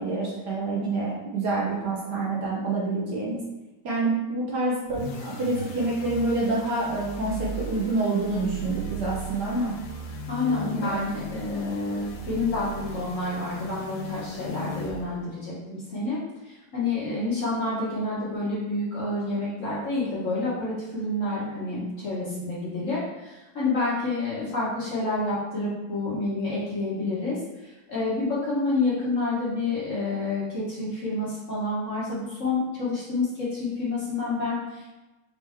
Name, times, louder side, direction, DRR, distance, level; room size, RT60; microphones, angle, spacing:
voice 1, 0.0-3.4 3.8-9.8 10.6-11.1, right 2 dB, 65° right, -4 dB, 1.2 m, -27 dB
sound 1, 4.9-15.3, right 1 dB, 70° left, 1.1 m, -37 dB
voice 2, 10.3-35.0, left 2 dB, 45° left, -8 dB, 1.3 m, -29 dB
4.5 x 2.8 x 3.5 m, 1.1 s
omnidirectional pair, 2.2 m